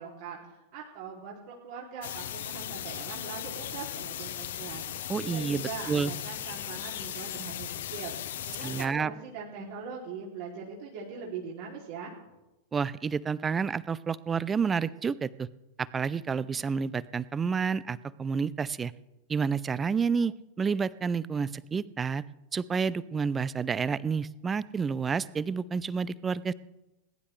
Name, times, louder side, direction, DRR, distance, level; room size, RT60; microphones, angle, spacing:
voice 1, 0.0-12.1, right 5 dB, 50° right, -3 dB, 2.8 m, -41 dB
sound 1, 2.0-8.9, left 11 dB, 60° left, 0.9 m, -37 dB
voice 2, 5.1-6.1 8.6-9.1 12.7-15.5 15.8-18.9 19.3-22.2 22.5-26.5, right 5 dB, 20° right, 20 dB, 0.5 m, -29 dB
20.5 x 11.5 x 3.3 m, 1.0 s
figure-of-eight pair, 90°, 0 cm